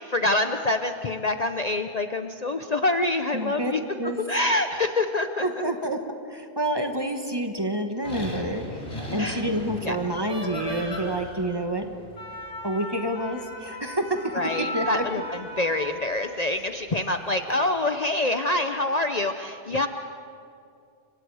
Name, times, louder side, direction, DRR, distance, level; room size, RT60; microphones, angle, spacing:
voice 1, 0.0-3.8 4.3-5.5 9.2-9.4 9.8-10.0 14.3-15.2 15.6-19.9, left 2 dB, 40° left, 7 dB, 0.8 m, -26 dB
voice 2, 3.3-4.2 5.4-6.0 6.3-8.8 9.1-11.9 12.6-14.2 14.6-15.0, right 1 dB, 20° right, 5 dB, 1.4 m, -28 dB
sound 1, 8.0-16.5 17.2-17.5, left 1 dB, 65° left, 4.3 m, -36 dB
30.0 x 24.5 x 4.9 m, 2.5 s
omnidirectional pair, 1.2 m